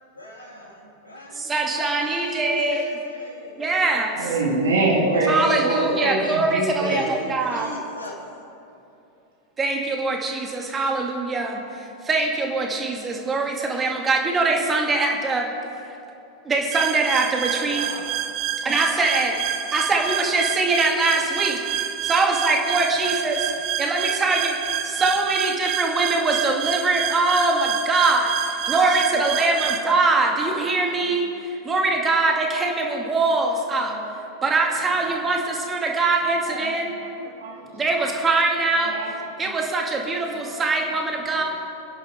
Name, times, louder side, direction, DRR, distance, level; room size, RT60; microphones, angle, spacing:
voice 1, 0.1-3.8 4.9-6.0 6.8-8.2 17.6-18.2, left 3 dB, 80° left, -2 dB, 3.1 m, -33 dB
voice 2, 1.3-2.8 3.6-4.3 5.3-7.7 9.6-15.5 16.4-17.9 18.6-19.4 19.7-21.6 22.0-23.5 23.8-24.6 24.8-33.9 34.4-36.9 37.7-39.0 39.4-41.4, right 3 dB, 20° right, 1 dB, 2.4 m, -23 dB
voice 3, 4.2-7.0 33.8-34.2 36.5-36.6 37.2-37.8 38.8-39.1 39.4-39.5 40.4-40.5 41.3-41.4, right 3 dB, 65° right, -3 dB, 3.6 m, -25 dB
sound 1, 16.7-29.8, right 10 dB, 40° right, 1.0 m, -28 dB
27.0 x 10.5 x 3.8 m, 2.7 s
figure-of-eight pair, 90°, 0 cm